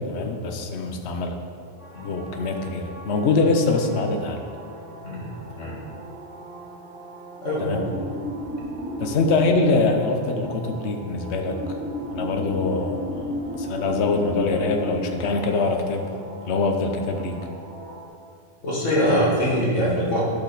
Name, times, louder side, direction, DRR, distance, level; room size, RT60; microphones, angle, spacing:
voice 1, 0.1-1.4 2.0-4.4 5.5-5.7 7.6-7.8 9.0-11.5 12.1-13.3 13.6-16.1 16.5-17.3, left 3 dB, 65° left, 4 dB, 1.1 m, -23 dB
sound 1, 1.8-18.1, equal, 50° right, 2.4 m, -36 dB
voice 2, 7.4-7.9 18.6-20.2, equal, 85° left, -5 dB, 2.1 m, -23 dB
12.5 x 6.2 x 4.0 m, 2.2 s
omnidirectional pair, 1.2 m